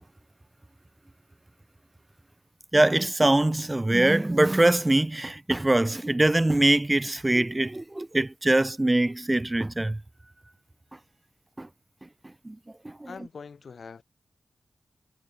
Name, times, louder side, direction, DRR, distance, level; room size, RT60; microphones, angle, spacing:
voice 1, 2.7-10.0 11.6-11.7 12.4-12.6 12.8-13.1, right 1 dB, 20° right, 0.6 m, -23 dB
voice 2, 13.1-14.0, left 5 dB, 70° left, 4.3 m, -43 dB
cardioid pair, 65°, 0 cm